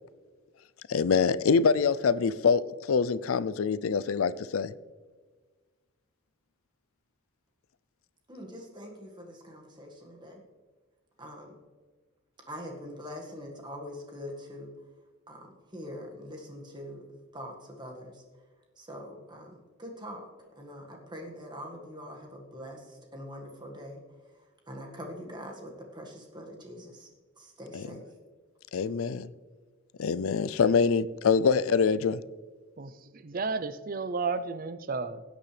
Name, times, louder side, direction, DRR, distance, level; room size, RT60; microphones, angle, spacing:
voice 1, 0.9-4.7 27.7-27.9 28.7-29.3 30.0-32.2, left 5 dB, 85° left, 0.4 m, -25 dB
voice 2, 8.3-10.4 11.2-11.6 12.4-14.7 15.3-17.0 17.3-18.2 18.8-20.3 20.5-24.0 24.7-27.1 27.4-28.1, equal, 20° right, 1.7 m, -43 dB
voice 3, 32.8-35.2, right 4 dB, 40° right, 0.5 m, -33 dB
16.5 x 9.1 x 3.3 m
head